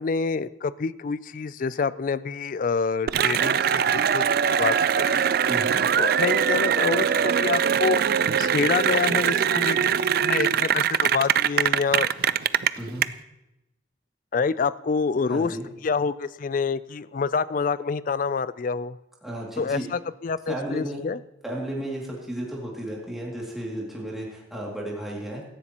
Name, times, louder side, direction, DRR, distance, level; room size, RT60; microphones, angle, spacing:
voice 1, 0.0-4.2 4.5-5.2 6.0-8.0 8.4-12.1 14.3-15.6 15.8-19.0 19.6-21.2, left 5 dB, 45° left, 17 dB, 0.4 m, -27 dB
Cheering / Applause, 3.1-13.0, right 8 dB, 50° right, 0.3 m, -22 dB
voice 2, 5.5-5.8 12.8-13.1 15.3-15.7 19.2-19.8 20.5-21.0 21.4-25.4, right 1 dB, ahead, -4 dB, 2.4 m, -33 dB
17.0 x 13.5 x 2.9 m, 0.91 s
head